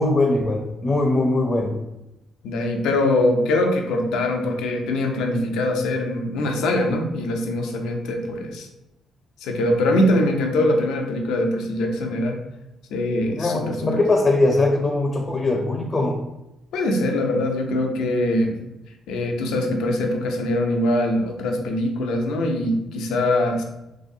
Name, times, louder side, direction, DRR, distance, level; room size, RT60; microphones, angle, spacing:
voice 1, 0.0-1.8 10.1-10.2 13.4-16.2, left 2 dB, 30° left, 1 dB, 0.5 m, -21 dB
voice 2, 2.4-8.7 9.4-12.4 12.9-14.0 16.7-18.6 19.1-23.6, left 1 dB, 85° left, 3 dB, 0.5 m, -22 dB
3.3 x 2.7 x 2.6 m, 0.90 s
cardioid pair, 90°, 0 cm